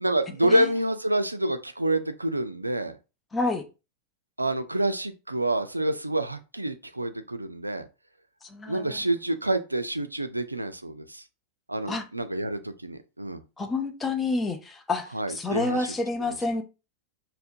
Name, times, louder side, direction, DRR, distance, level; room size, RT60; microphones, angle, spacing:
voice 1, 0.0-2.9 4.4-7.8 8.7-11.2 11.7-13.4 15.1-15.8 16.2-16.3, right 1 dB, 85° right, 0.4 m, -27 dB
voice 2, 3.3-3.6 8.4-9.0 11.9-12.0 13.6-16.6, left 3 dB, 15° left, 0.7 m, -29 dB
5.5 x 2.1 x 2.7 m
figure-of-eight pair, 90°, 0 cm